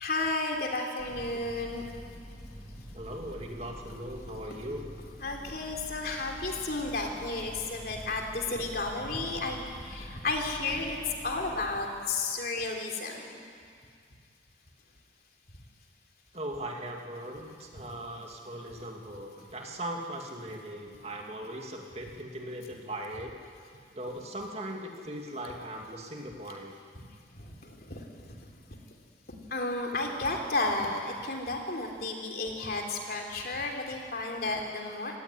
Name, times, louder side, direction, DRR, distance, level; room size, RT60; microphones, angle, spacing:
voice 1, 0.0-1.9 5.2-11.0 11.2-13.4 27.3-28.0 29.5-35.2, left 2 dB, 55° left, 2 dB, 3.5 m, -32 dB
sound 1, 1.0-11.7, equal, 10° right, 4.3 m, -46 dB
voice 2, 2.9-5.0 16.3-23.3 23.9-26.7, right 1 dB, 35° right, 1 dB, 2.4 m, -39 dB
26.0 x 18.0 x 9.9 m, 2.2 s
head